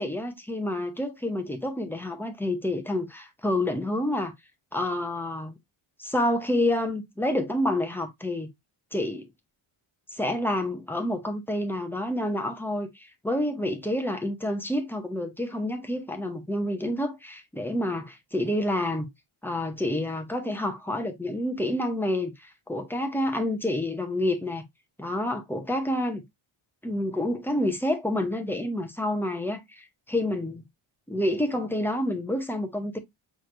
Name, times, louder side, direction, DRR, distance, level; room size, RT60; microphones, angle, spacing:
voice 1, 0.0-4.3 4.7-5.5 6.0-8.5 8.9-9.3 10.1-19.1 19.4-24.6 25.0-26.2 26.8-30.6 31.1-33.0, left 1 dB, 5° left, 0.6 m, -28 dB
6.0 x 3.1 x 2.5 m
wide cardioid pair, 165°, 50 cm